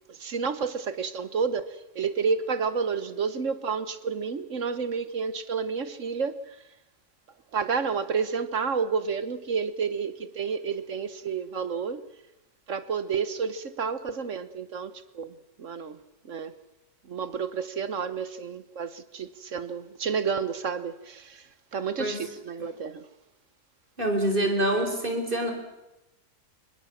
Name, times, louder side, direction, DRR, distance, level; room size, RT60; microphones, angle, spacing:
voice 1, 0.1-1.7 1.9-6.6 7.5-12.0 12.7-16.0 16.2-16.5 17.1-21.4 21.7-23.0, right 5 dB, 55° right, 1.3 m, -30 dB
voice 2, 24.0-25.5, right 1 dB, 30° right, 4.3 m, -25 dB
24.5 x 21.0 x 7.3 m
omnidirectional pair, 1.7 m